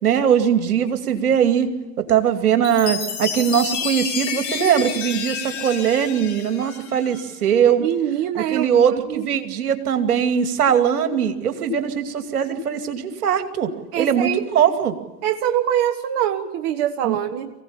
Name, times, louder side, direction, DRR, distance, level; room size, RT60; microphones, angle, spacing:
voice 1, 0.0-1.7 2.0-7.9 8.3-14.9 17.0-17.2, right 8 dB, 65° right, 7 dB, 2.6 m, -20 dB
Chime, 2.6-7.2, left 7 dB, 40° left, 3.8 m, -30 dB
voice 2, 7.8-8.7 9.1-9.2 13.9-14.4 15.2-17.5, right 11 dB, 35° right, 6 dB, 1.3 m, -23 dB
24.0 x 17.0 x 8.7 m, 1.2 s
figure-of-eight pair, 100°, 47 cm